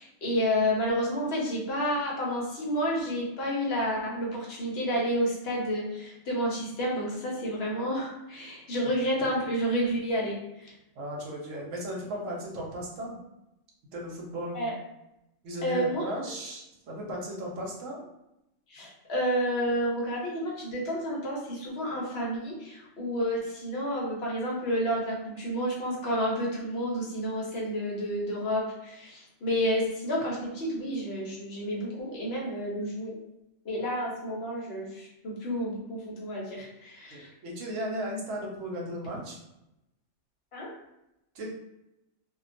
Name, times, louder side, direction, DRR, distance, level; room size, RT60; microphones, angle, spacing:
voice 1, 0.0-10.8 14.5-14.7 15.6-16.3 18.7-33.2 33.6-37.3 40.5-40.7, equal, 60° left, -3 dB, 0.9 m, -30 dB
voice 2, 11.0-13.2 13.9-14.7 15.4-18.0 37.1-39.4 41.3-41.5, equal, 85° right, -2 dB, 1.1 m, -36 dB
2.4 x 2.2 x 2.5 m, 0.88 s
omnidirectional pair, 1.3 m